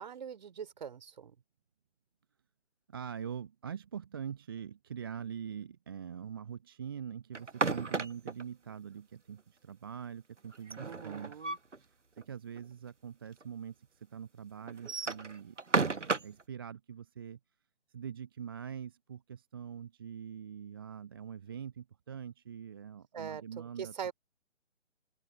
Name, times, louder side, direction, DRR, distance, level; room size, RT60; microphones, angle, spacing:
voice 1, 0.0-1.4 10.8-11.6 23.1-24.1, right 7 dB, 40° right, 4.3 m, -42 dB
voice 2, 2.9-11.4 12.3-13.7 14.1-17.4 17.9-24.1, right 8 dB, 20° right, 0.8 m, -43 dB
sound 1, 7.3-8.4 10.5-11.8 12.2-12.3 12.6-12.7 13.4-13.5 14.7-16.4, right 4 dB, 80° right, 1.1 m, -33 dB
open air
figure-of-eight pair, 145°, 35 cm